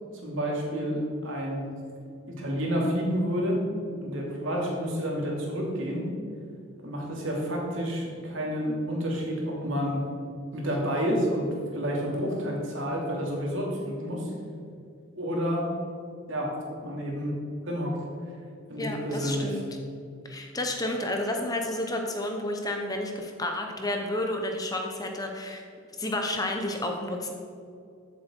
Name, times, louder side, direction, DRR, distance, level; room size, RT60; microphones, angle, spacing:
voice 1, 0.2-1.7 2.3-3.6 4.0-6.0 6.8-10.0 10.5-11.5 11.7-14.3 15.2-15.7 16.3-16.5 16.8-17.3 17.6-18.0 18.7-19.6, equal, 70° right, -2 dB, 2.9 m, -29 dB
voice 2, 18.8-19.7 20.2-25.6 26.0-27.3, left 1 dB, 15° left, 2 dB, 0.9 m, -31 dB
14.5 x 7.7 x 4.6 m, 2.4 s
head